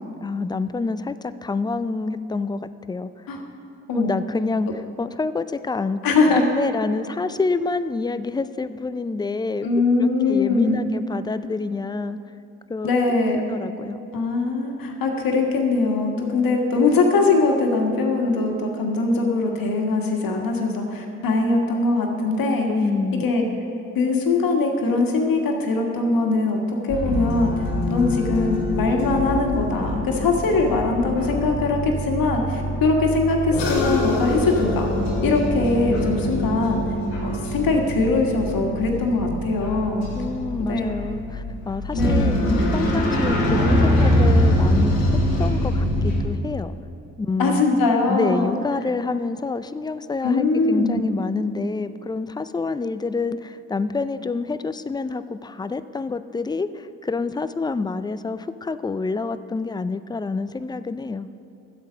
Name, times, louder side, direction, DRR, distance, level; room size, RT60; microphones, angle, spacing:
voice 1, 0.2-2.6 2.9-3.1 3.9-9.7 10.0-12.2 12.7-12.9 13.5-14.0 22.7-23.2 40.1-42.4 42.7-45.0 45.4-46.8 47.2-47.6 48.1-61.3, left 3 dB, 10° left, 13 dB, 0.4 m, -27 dB
voice 2, 6.0-6.4 9.6-10.8 12.8-13.4 14.1-22.7 23.2-23.4 23.9-27.5 27.9-34.9 35.2-36.8 37.2-40.0 40.6-40.9 42.0-42.4 47.4-48.5 50.2-51.1, left 3 dB, 60° left, 2 dB, 1.7 m, -21 dB
sound 1, 26.9-46.2, left 1 dB, 90° left, 1.3 m, -24 dB
12.0 x 8.0 x 5.2 m, 2.7 s
hypercardioid pair, 40°, 38 cm